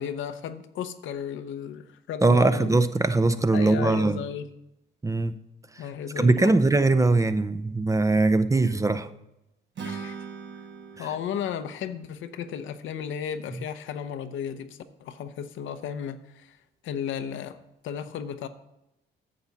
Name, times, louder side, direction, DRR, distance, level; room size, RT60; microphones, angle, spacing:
voice 1, 0.0-2.7 3.5-4.5 5.8-6.5 9.8-10.2 11.0-16.6 16.8-17.6 17.8-18.5, left 8 dB, 75° left, 9 dB, 0.7 m, -34 dB
voice 2, 2.2-4.2 5.0-5.3 6.2-9.1 11.0-11.1, right 2 dB, 15° right, 12 dB, 0.5 m, -21 dB
Acoustic guitar / Strum, 9.8-13.0, right 6 dB, 65° right, 1.4 m, -41 dB
9.9 x 7.0 x 4.0 m, 0.89 s
cardioid pair, 90°, 20 cm